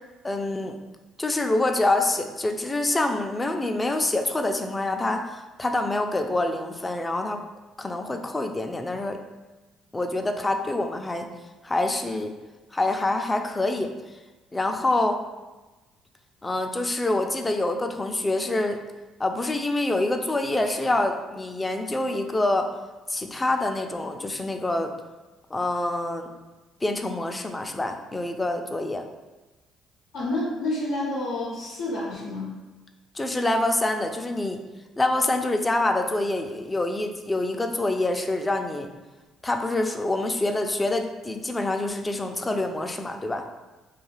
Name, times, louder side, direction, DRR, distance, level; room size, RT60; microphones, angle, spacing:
voice 1, 0.2-0.8 1.2-7.4 7.8-9.2 9.9-11.3 11.6-12.3 12.7-13.9 14.5-15.2 16.4-18.8 19.2-22.7 23.1-24.9 25.5-26.3 26.8-29.0 33.1-34.6 35.0-38.9 39.4-43.4, left 2 dB, 20° left, 5 dB, 0.3 m, -26 dB
voice 2, 30.1-32.6, left 2 dB, 85° left, -6 dB, 0.6 m, -29 dB
2.4 x 2.3 x 3.1 m, 1.2 s
supercardioid pair, 65°, 0 cm